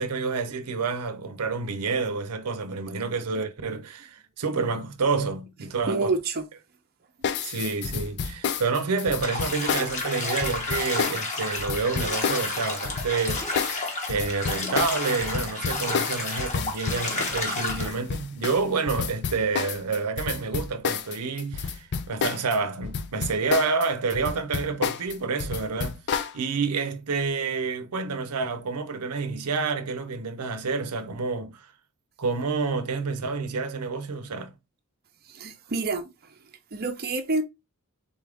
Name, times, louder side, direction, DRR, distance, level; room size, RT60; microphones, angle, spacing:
voice 1, 0.0-6.1 7.4-26.0 26.3-31.7 32.2-34.5, right 4 dB, 90° right, 0.7 m, -28 dB
voice 2, 5.9-6.5 35.2-36.3 36.7-37.4, right 3 dB, 45° right, 0.7 m, -28 dB
sound 1, 7.2-22.6 22.8-26.3, left 6 dB, 50° left, 0.5 m, -30 dB
Bathtub (filling or washing), 9.2-17.9, left 2 dB, 35° left, 1.1 m, -31 dB
3.9 x 3.7 x 3.5 m
head